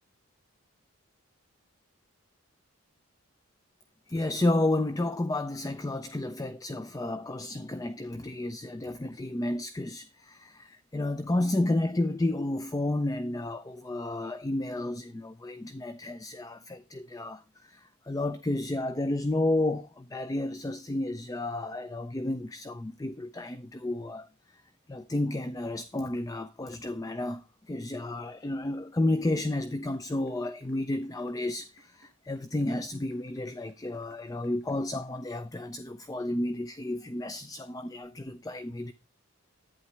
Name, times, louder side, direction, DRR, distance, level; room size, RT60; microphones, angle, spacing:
voice 1, 4.1-24.3 24.9-38.9, left 2 dB, 15° left, 0.4 m, -31 dB
sound 1, 29.7-35.7, right 1 dB, 50° left, 5.5 m, -61 dB
11.0 x 9.3 x 3.3 m
head